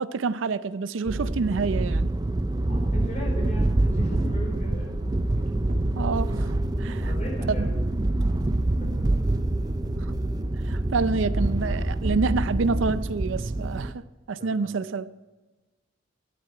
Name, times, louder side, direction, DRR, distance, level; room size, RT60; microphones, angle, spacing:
voice 1, 0.0-2.1 6.0-6.5 6.8-7.1 7.6-7.7 10.0-10.1 10.7-15.1, right 4 dB, 85° right, 0.5 m, -28 dB
sound 1, 1.1-13.9, right 2 dB, 20° right, 0.4 m, -27 dB
voice 2, 2.6-5.0 5.3-5.5 7.0-7.7 8.3-9.1 14.3-14.7, equal, 40° left, 4.8 m, -38 dB
sound 2, 2.6-12.9, equal, 40° right, 1.5 m, -32 dB
12.5 x 9.7 x 4.7 m
head